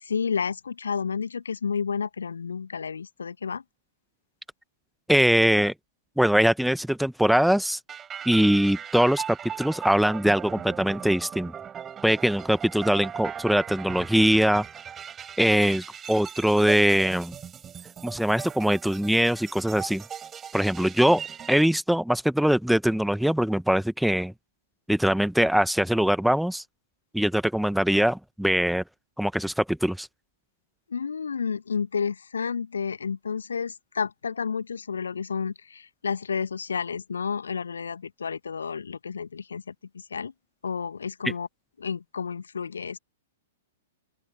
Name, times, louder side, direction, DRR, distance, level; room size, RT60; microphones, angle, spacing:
voice 1, 0.0-3.6 30.9-39.7 40.1-40.3 40.6-41.5 41.8-43.0, left 6 dB, 70° left, 1.9 m, -31 dB
voice 2, 5.1-5.7 6.2-7.8 8.2-9.2 9.6-11.5 12.0-14.6 15.4-17.3 18.0-20.0 20.5-21.2 21.5-24.3 24.9-26.6 27.1-28.8 29.2-30.1, equal, ahead, 1.5 m, -22 dB
sound 1, 7.9-21.6, right 8 dB, 20° right, 7.8 m, -39 dB
open air
figure-of-eight pair, 105°, 0 cm